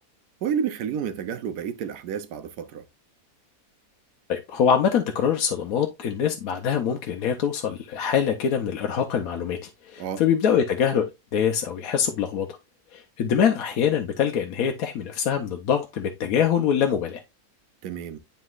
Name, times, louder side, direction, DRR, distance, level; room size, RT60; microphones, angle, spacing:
voice 1, 0.4-2.8 10.0-10.2 17.8-18.2, right 8 dB, 85° right, 1.2 m, -30 dB
voice 2, 4.3-11.0 11.3-12.5 12.9-17.2, left 8 dB, 70° left, 1.1 m, -24 dB
9.6 x 4.1 x 2.4 m
omnidirectional pair, 1.7 m